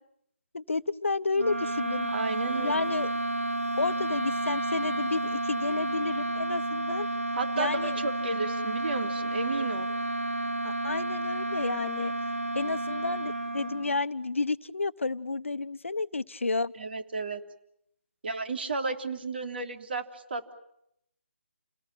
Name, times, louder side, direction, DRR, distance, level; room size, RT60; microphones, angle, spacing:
voice 1, 0.5-2.1 2.6-3.1 3.8-7.1 7.6-8.0 10.6-12.1 12.5-16.7, left 3 dB, 75° left, 16 dB, 0.9 m, -31 dB
sound 1, 1.3-14.1, right 1 dB, 80° right, 2.9 m, -31 dB
voice 2, 2.1-2.8 7.3-9.9 16.7-17.4 18.2-20.5, right 3 dB, 50° right, 6 dB, 3.4 m, -33 dB
29.5 x 19.0 x 9.0 m, 0.77 s
figure-of-eight pair, 150°, 7 cm